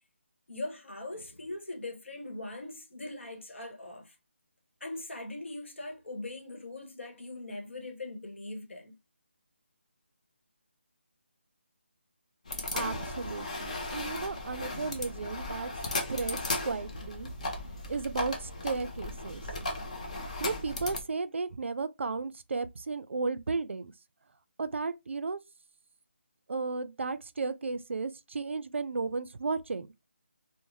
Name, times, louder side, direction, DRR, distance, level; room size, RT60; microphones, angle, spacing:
voice 1, 0.5-4.2 4.8-9.0, left 2 dB, 75° left, 1.0 m, -41 dB
sound 1, 12.5-21.0, left 2 dB, 35° left, 0.5 m, -36 dB
voice 2, 12.7-15.7 16.1-16.4 16.6-17.3 17.9-19.4 20.4-23.9 24.6-25.4 26.5-29.9, right 4 dB, 75° right, 0.3 m, -34 dB
2.6 x 2.0 x 3.1 m
figure-of-eight pair, 170°, 7 cm